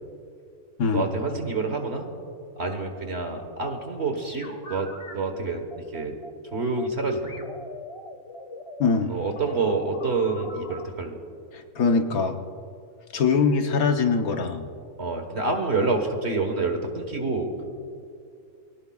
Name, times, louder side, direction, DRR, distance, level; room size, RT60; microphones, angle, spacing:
voice 1, 0.9-2.1 2.6-6.2 6.5-7.4 9.1-11.2 15.0-17.7, right 3 dB, 45° right, 4 dB, 1.7 m, -27 dB
sound 1, 4.1-5.1 5.7-6.9 7.2-10.8, left 2 dB, 20° left, 1.5 m, -42 dB
voice 2, 8.8-9.1 11.5-12.3 13.1-14.7, left 5 dB, 75° left, 5 dB, 1.5 m, -22 dB
25.5 x 18.0 x 2.4 m, 2.5 s
omnidirectional pair, 1.5 m